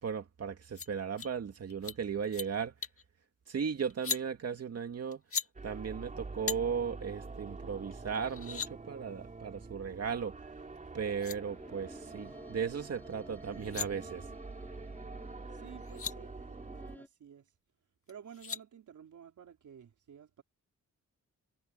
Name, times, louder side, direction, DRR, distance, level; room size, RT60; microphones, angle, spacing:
voice 1, 0.0-2.7 3.5-5.2 5.6-10.3 10.9-14.2, right 6 dB, 50° right, 2.4 m, -36 dB
sound 1, 0.8-0.9 1.2-1.3 1.7-2.0 2.2-2.5 2.8-3.0 3.9-4.2 5.1-5.5 6.5-6.6 7.9-8.0 8.2-8.7 10.8-10.9 11.1-11.4 13.4-13.9 15.5-15.6 15.8-16.1 18.1-18.6, left 6 dB, 45° left, 1.8 m, -37 dB
sound 2, 5.5-17.0, right 3 dB, 25° right, 3.4 m, -46 dB
sound 3, 11.4-17.1, left 1 dB, 5° left, 4.1 m, -54 dB
voice 2, 15.5-16.4 16.9-17.5 18.1-20.4, right 8 dB, 65° right, 4.0 m, -52 dB
wide cardioid pair, 165°, 32 cm